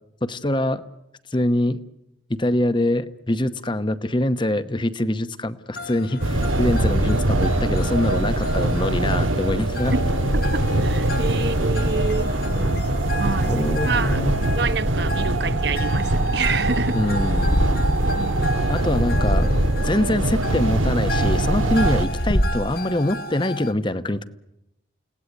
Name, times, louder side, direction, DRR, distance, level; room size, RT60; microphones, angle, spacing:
voice 1, 0.2-0.8 1.3-1.8 2.3-9.9 12.5-12.8 13.4-14.4 16.9-17.6 18.7-19.5 19.8-24.2, left 1 dB, 25° left, 0.9 m, -24 dB
sound 1, 5.7-23.7, equal, 50° left, 1.3 m, -35 dB
sound 2, 6.2-22.1, right 1 dB, 90° right, 1.8 m, -22 dB
voice 2, 10.3-12.4 13.2-17.0 18.1-18.9, right 4 dB, 55° right, 1.0 m, -28 dB
Purr, 17.1-18.2 18.9-20.0 20.7-22.8, equal, 85° left, 2.1 m, -24 dB
29.5 x 18.0 x 9.9 m
head